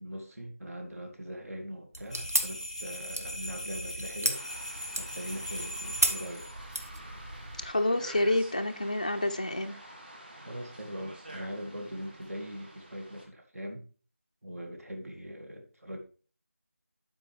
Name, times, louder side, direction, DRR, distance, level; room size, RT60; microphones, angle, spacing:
voice 1, 0.0-4.4 4.9-6.5 10.4-13.8 14.4-16.0, equal, 70° right, 2.0 m, -41 dB
sound 1, 1.9-7.7, right 1 dB, 90° right, 1.5 m, -35 dB
sound 2, 2.1-6.5, equal, 5° right, 0.9 m, -40 dB
sound 3, 4.3-13.3, right 1 dB, 40° right, 1.3 m, -48 dB
voice 2, 7.6-9.8, left 1 dB, 30° left, 0.4 m, -28 dB
11.5 x 4.5 x 3.2 m
figure-of-eight pair, 175°, 8 cm